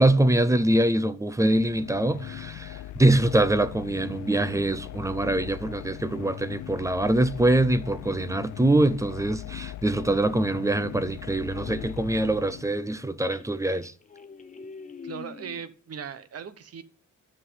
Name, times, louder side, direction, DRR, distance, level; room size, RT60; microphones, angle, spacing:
voice 1, 0.0-13.9, right 1 dB, 10° right, 0.6 m, -24 dB
sound 1, 1.4-13.2, left 13 dB, 75° left, 0.7 m, -40 dB
sound 2, 11.5-12.0 12.7-12.8 13.2-15.6, left 4 dB, 25° left, 1.0 m, -44 dB
voice 2, 15.0-16.8, right 7 dB, 50° right, 1.1 m, -38 dB
12.5 x 5.9 x 8.1 m
wide cardioid pair, 175°, 30 cm